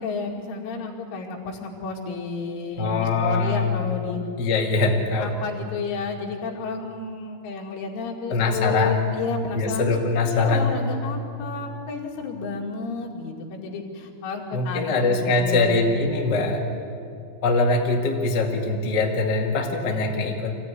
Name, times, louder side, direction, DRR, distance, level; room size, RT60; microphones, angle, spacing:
voice 1, 0.0-4.2 5.2-10.0 10.3-16.0, left 4 dB, 80° left, 0 dB, 4.8 m, -31 dB
voice 2, 2.8-3.8 4.4-5.3 8.3-9.1 9.5-10.7 14.5-16.7 17.4-20.6, left 3 dB, 40° left, 0 dB, 1.6 m, -22 dB
24.5 x 16.0 x 9.9 m, 2.6 s
omnidirectional pair, 5.5 m